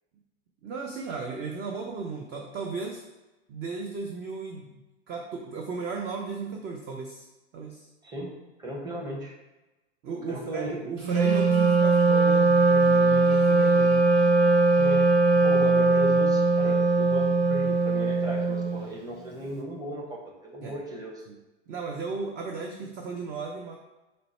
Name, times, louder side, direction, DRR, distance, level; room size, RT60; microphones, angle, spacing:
voice 1, 0.6-3.0 3.5-4.7 5.1-7.2 7.5-7.9 10.0-14.1 16.6-16.7 20.6-20.7 21.3-21.4 21.7-23.8, right 4 dB, 30° right, 1 dB, 0.4 m, -35 dB
voice 2, 8.6-9.3 10.3-10.8 14.8-15.1 15.3-21.2, right 1 dB, 10° right, -3 dB, 0.9 m, -36 dB
Wind instrument woodwind instrument, 11.0-18.9, right 3 dB, 65° right, 1.0 m, -21 dB
3.8 x 2.1 x 4.3 m, 1.1 s
hypercardioid pair, 105°, 34 cm